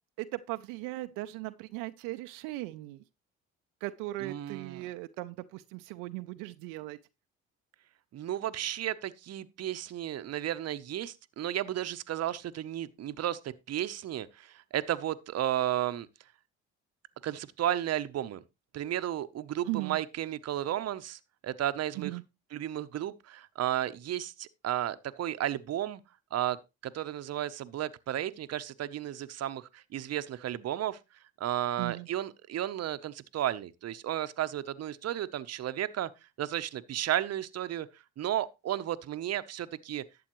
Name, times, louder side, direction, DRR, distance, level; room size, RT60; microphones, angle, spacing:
voice 1, 0.2-3.0 3.8-7.0 19.7-20.0 22.0-22.2 31.8-32.1, right 19 dB, 80° right, 0.6 m, -38 dB
voice 2, 4.2-4.9 8.1-16.1 17.2-18.4 18.7-22.1 22.5-26.0 26.3-26.6 26.8-31.0 31.4-36.1 36.4-37.9 38.2-40.0, right 12 dB, 50° right, 0.8 m, -33 dB
11.5 x 7.7 x 3.0 m
supercardioid pair, 65°, 33 cm